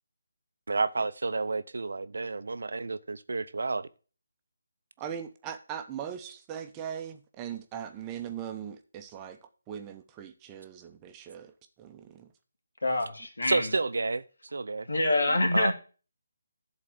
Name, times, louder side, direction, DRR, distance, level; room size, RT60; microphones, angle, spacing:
voice 1, 0.7-3.9 13.4-14.2 14.5-14.9 15.5-15.7, right 3 dB, 70° right, 0.7 m, -30 dB
voice 2, 5.0-9.4 9.7-12.3 15.3-15.4, right 9 dB, 15° right, 0.9 m, -40 dB
voice 3, 12.8-13.7 14.9-15.7, left 2 dB, 75° left, 2.6 m, -26 dB
11.0 x 4.1 x 7.7 m
figure-of-eight pair, 155°, 0 cm